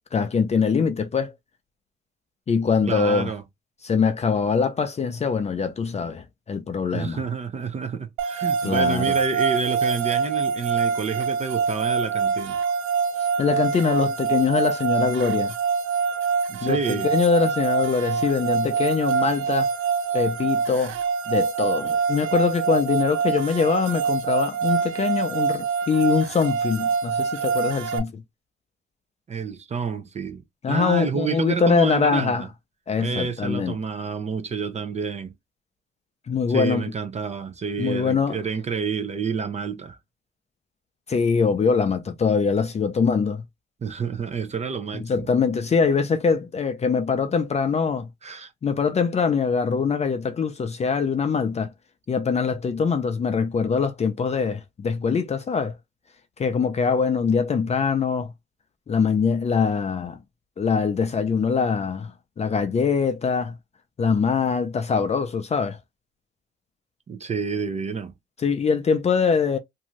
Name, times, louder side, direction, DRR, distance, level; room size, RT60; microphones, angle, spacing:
voice 1, 0.1-1.3 2.5-3.3 3.8-7.2 8.6-9.1 13.4-15.5 16.6-19.7 20.1-20.9 21.3-28.2 30.6-32.4 32.9-33.8 36.3-36.8 37.8-38.4 41.1-43.4 45.0-48.1 48.6-51.7 52.1-55.7 56.4-58.3 58.9-60.2 60.6-63.6 64.0-65.8 68.4-69.6, left 5 dB, 35° left, 0.5 m, -23 dB
voice 2, 2.8-3.4 6.9-12.6 16.5-17.1 29.3-32.5 33.0-35.3 36.5-40.0 43.8-45.3 48.2-48.5 67.1-68.1, right 5 dB, 35° right, 0.5 m, -29 dB
sound 1, 8.2-28.0, right 6 dB, 85° right, 0.6 m, -25 dB
2.6 x 2.3 x 3.0 m
cardioid pair, 90°, 20 cm